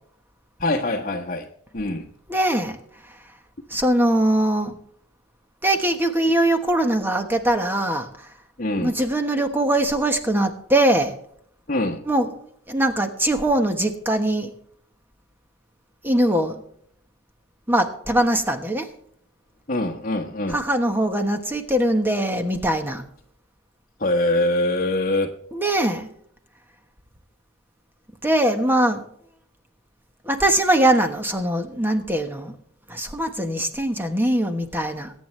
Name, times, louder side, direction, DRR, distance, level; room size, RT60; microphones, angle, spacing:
voice 1, 0.6-1.5 1.7-2.1 8.6-8.9 11.7-12.0 19.7-20.6 24.0-25.3, left 1 dB, 40° left, 0 dB, 1.2 m, -23 dB
voice 2, 2.3-2.8 3.1-3.2 3.7-4.8 5.6-8.3 8.8-11.1 12.0-14.5 16.0-16.5 17.7-18.9 20.5-23.0 25.5-26.1 28.2-29.0 30.2-32.5 32.9-35.1, right 1 dB, 10° right, 6 dB, 1.3 m, -22 dB
22.5 x 9.3 x 3.3 m, 0.67 s
head